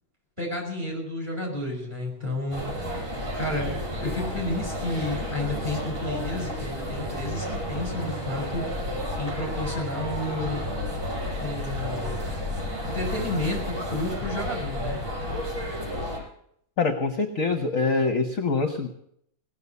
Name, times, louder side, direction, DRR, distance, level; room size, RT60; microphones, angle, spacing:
voice 1, 0.4-2.6 3.4-8.7 9.2-10.6 11.4-12.2 12.9-15.0, left 2 dB, 20° right, -1 dB, 6.0 m, -31 dB
sound 1, 2.5-16.2, left 1 dB, 75° right, 6.8 m, -31 dB
voice 2, 16.8-18.9, left 4 dB, 50° left, 5 dB, 1.2 m, -24 dB
18.0 x 7.0 x 9.4 m, 0.72 s
omnidirectional pair, 2.2 m